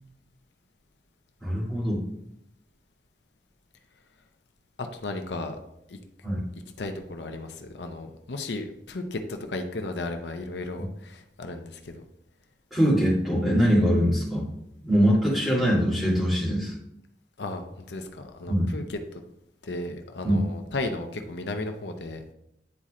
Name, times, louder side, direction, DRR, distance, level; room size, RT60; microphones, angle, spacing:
voice 1, 1.4-2.0 6.2-6.4 12.7-14.5 14.8-16.7 18.5-18.7 20.2-20.4, equal, ahead, -8 dB, 2.1 m, -23 dB
voice 2, 4.8-5.6 5.9-6.0 6.8-12.0 17.4-19.0 19.6-22.2, left 2 dB, 85° left, 5 dB, 0.7 m, -34 dB
9.7 x 4.2 x 2.5 m, 0.80 s
head